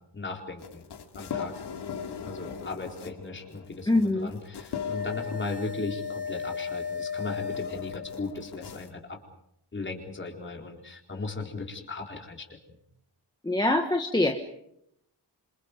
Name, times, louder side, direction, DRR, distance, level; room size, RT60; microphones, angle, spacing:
voice 1, 0.1-0.8 1.2-1.5 2.2-9.2 9.7-12.8, left 3 dB, 30° left, 1 dB, 4.1 m, -37 dB
sound 1, 0.6-8.9, left 6 dB, 75° left, 2.6 m, -36 dB
voice 2, 3.9-4.3 13.4-14.4, left 2 dB, 10° left, 3 dB, 1.3 m, -24 dB
28.0 x 27.0 x 5.2 m, 0.76 s
wide cardioid pair, 180°, 41 cm